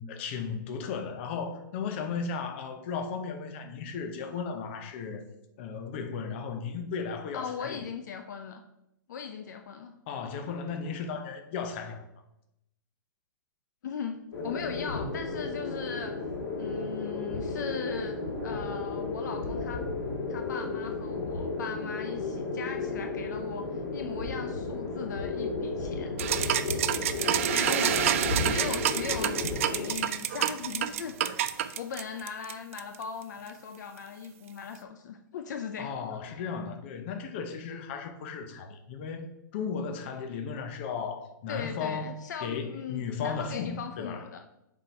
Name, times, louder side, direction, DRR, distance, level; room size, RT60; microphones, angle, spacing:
voice 1, 0.0-5.3 5.6-7.9 10.1-12.1 35.8-44.2, left 5 dB, 30° left, 6 dB, 0.9 m, -35 dB
voice 2, 7.3-8.6 9.1-9.9 13.8-16.2 16.6-18.2 18.4-19.9 20.3-26.2 27.5-31.2 31.7-36.2 41.5-44.4, left 6 dB, 55° left, 6 dB, 0.6 m, -39 dB
sound 1, 14.3-29.9, left 3 dB, 85° left, 2.7 m, -33 dB
sound 2, 26.2-33.0, right 10 dB, 40° right, 0.4 m, -28 dB
7.3 x 4.3 x 4.7 m, 0.85 s
hypercardioid pair, 165°, 11 cm